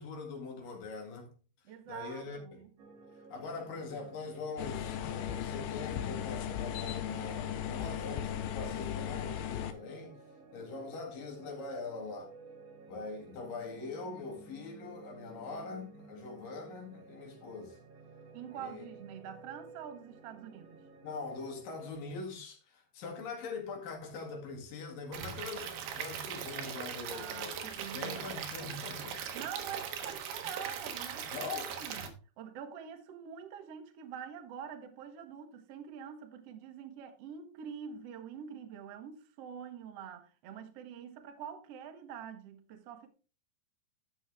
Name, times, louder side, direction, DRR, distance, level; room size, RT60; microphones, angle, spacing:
voice 1, 0.0-1.3 1.9-2.6 3.3-10.2 10.5-12.3 12.9-17.8 18.5-18.9 21.0-27.6 27.9-29.2 31.3-31.7, left 4 dB, 60° left, 3.5 m, -42 dB
voice 2, 1.6-2.7 18.3-20.8 27.1-28.2 29.3-32.0 32.4-43.1, right 8 dB, 85° right, 1.3 m, -45 dB
sound 1, 2.8-21.9, right 3 dB, 55° right, 1.9 m, -54 dB
room tone small market, 4.6-9.7, left 10 dB, 80° left, 2.7 m, -37 dB
Stream / Liquid, 25.1-32.1, right 8 dB, 70° right, 2.9 m, -40 dB
12.5 x 6.2 x 3.4 m
omnidirectional pair, 4.8 m